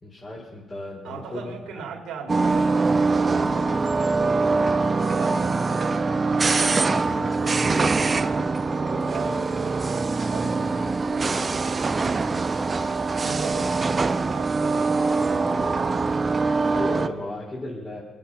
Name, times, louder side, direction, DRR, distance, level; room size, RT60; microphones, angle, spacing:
voice 1, 0.0-1.8 16.7-18.0, left 1 dB, 30° left, -6 dB, 4.4 m, -35 dB
voice 2, 1.0-3.8 4.5-8.2 8.7-12.6 13.2-16.0, right 4 dB, 80° right, 1 dB, 2.5 m, -39 dB
sound 1, 2.3-17.1, right 3 dB, 30° right, 0.8 m, -23 dB
25.5 x 9.0 x 5.8 m, 1.1 s
cardioid pair, 90°, 0 cm